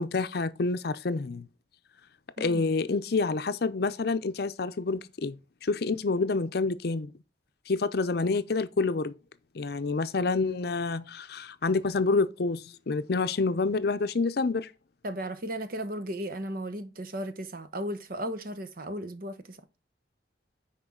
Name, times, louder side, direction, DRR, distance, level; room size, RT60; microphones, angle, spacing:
voice 1, 0.0-1.5 2.4-7.1 7.7-9.1 9.5-14.7, left 3 dB, 60° left, 0.6 m, -28 dB
voice 2, 15.0-19.6, right 1 dB, 55° right, 1.0 m, -35 dB
10.0 x 4.4 x 3.8 m
head